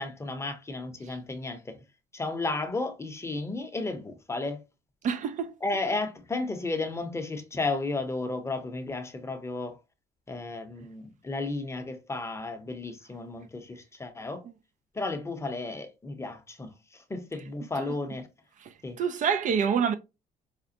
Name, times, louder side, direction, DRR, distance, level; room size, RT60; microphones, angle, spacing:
voice 1, 0.0-1.8 2.1-4.6 5.6-9.8 10.3-14.4 14.9-18.3 18.8-19.0, left 3 dB, 15° left, 0.7 m, -33 dB
voice 2, 5.0-5.5 17.8-17.9 18.6-19.9, right 7 dB, 50° right, 0.4 m, -27 dB
5.0 x 2.1 x 2.7 m
cardioid pair, 110°, 17 cm